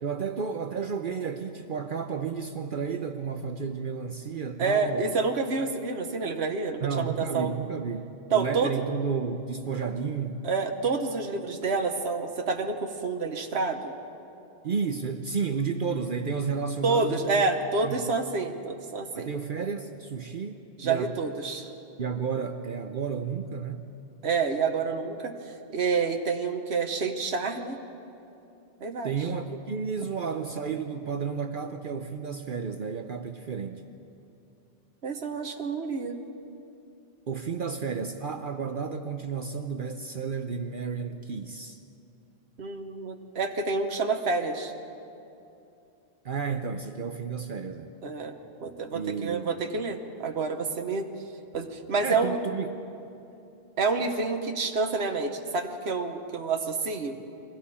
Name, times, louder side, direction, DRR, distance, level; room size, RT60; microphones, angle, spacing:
voice 1, 0.0-5.2 6.8-10.4 14.6-17.4 17.8-18.0 19.1-21.1 22.0-23.9 29.0-33.8 37.3-41.8 46.2-47.9 48.9-49.5 52.0-52.7, right 5 dB, 55° right, 7 dB, 0.9 m, -32 dB
voice 2, 4.6-7.5 8.3-8.8 10.4-13.9 16.8-19.3 20.8-21.7 24.2-27.8 28.8-29.1 35.0-36.2 42.6-44.7 48.0-51.1 51.5-52.4 53.8-57.1, right 4 dB, 75° right, 4 dB, 1.5 m, -28 dB
29.5 x 22.5 x 4.3 m, 2.7 s
omnidirectional pair, 1.1 m